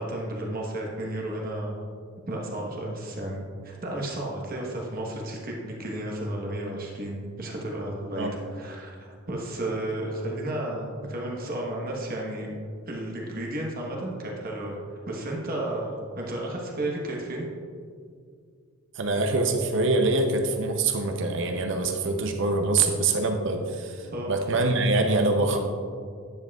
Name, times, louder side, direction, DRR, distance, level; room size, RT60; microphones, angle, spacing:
voice 1, 0.0-1.8 2.3-12.5 12.8-14.7 15.1-17.5 24.1-24.3, right 1 dB, 40° right, -2 dB, 1.2 m, -33 dB
voice 2, 18.9-25.6, right 3 dB, 55° right, 4 dB, 0.6 m, -24 dB
10.5 x 7.3 x 2.4 m, 2.1 s
head